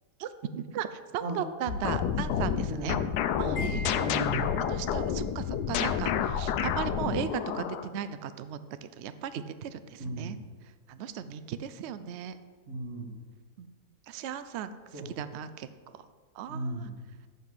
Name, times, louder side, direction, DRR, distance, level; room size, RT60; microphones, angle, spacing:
voice 1, 0.2-3.0 3.4-3.9 4.7-10.3 10.9-12.4 13.6-13.7 14.1-16.0 16.3-16.9, right 9 dB, 85° right, 12 dB, 0.5 m, -37 dB
sound 1, 1.7-7.9, left 8 dB, 90° left, 1.2 m, -29 dB
voice 2, 3.4-4.4 10.0-10.4 12.7-13.1 14.9-15.1 16.5-17.0, right 2 dB, 50° right, -1 dB, 2.2 m, -36 dB
Wind chime, 3.6-4.9, left 3 dB, 65° left, 1.6 m, -42 dB
7.5 x 6.6 x 7.8 m, 1.5 s
omnidirectional pair, 1.7 m